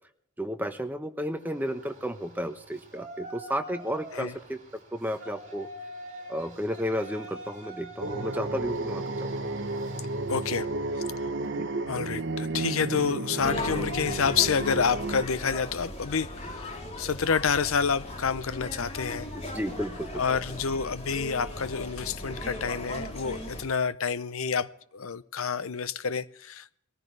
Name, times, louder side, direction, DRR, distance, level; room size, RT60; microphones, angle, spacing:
voice 1, 0.4-4.6 4.9-5.7 6.3-9.3 11.5-11.7 19.3-20.2, equal, 10° right, 1.0 m, -33 dB
Yell, 1.3-11.6, right 1 dB, 35° right, 3.9 m, -44 dB
sound 1, 8.0-15.3, right 2 dB, 50° right, 0.9 m, -32 dB
voice 2, 10.3-10.7 11.9-16.7 17.0-19.3 20.2-26.8, left 6 dB, 65° left, 0.7 m, -28 dB
sound 2, 13.4-23.6, left 1 dB, 30° left, 3.4 m, -38 dB
22.0 x 15.0 x 3.3 m
head